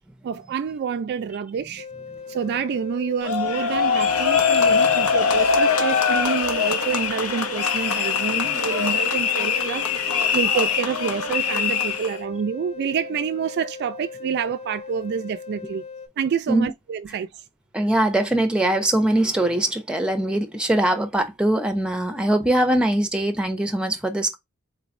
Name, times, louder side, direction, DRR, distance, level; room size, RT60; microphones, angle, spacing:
voice 1, 0.2-1.9 2.3-15.8 16.2-17.4, right 7 dB, 50° right, 0.3 m, -28 dB
sound 1, 1.8-16.1, left 5 dB, 30° left, 0.8 m, -39 dB
sound 2, 3.2-12.2, left 6 dB, 90° left, 0.9 m, -22 dB
voice 2, 17.7-24.4, right 1 dB, 5° right, 0.7 m, -22 dB
4.2 x 3.0 x 2.5 m
head